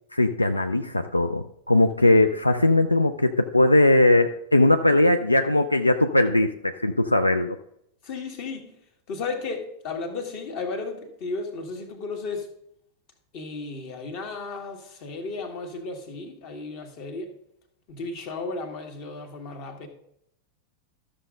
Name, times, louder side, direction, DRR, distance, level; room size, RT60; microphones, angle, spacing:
voice 1, 0.1-7.6, left 2 dB, 85° left, 8 dB, 0.4 m, -20 dB
voice 2, 8.0-8.7 9.1-12.5 13.3-17.3 17.9-19.9, left 3 dB, 45° left, 5 dB, 1.6 m, -34 dB
12.5 x 6.4 x 3.7 m, 0.78 s
figure-of-eight pair, 90°, 0 cm